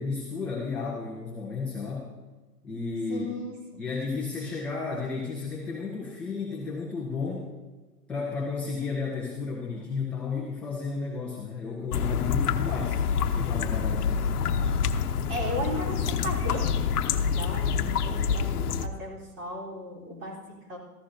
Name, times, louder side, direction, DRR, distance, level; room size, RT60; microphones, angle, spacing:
voice 1, 0.0-2.1 2.6-3.3 3.8-7.5 8.1-13.0 13.3-14.3, left 4 dB, 5° left, -4 dB, 0.4 m, -33 dB
voice 2, 3.1-3.6 15.3-16.7 17.1-20.8, right 1 dB, 30° right, -3 dB, 3.6 m, -36 dB
sound 1, 11.9-18.9, left 6 dB, 70° left, 0.9 m, -27 dB
15.5 x 14.5 x 2.7 m, 1.2 s
hypercardioid pair, 125°, 47 cm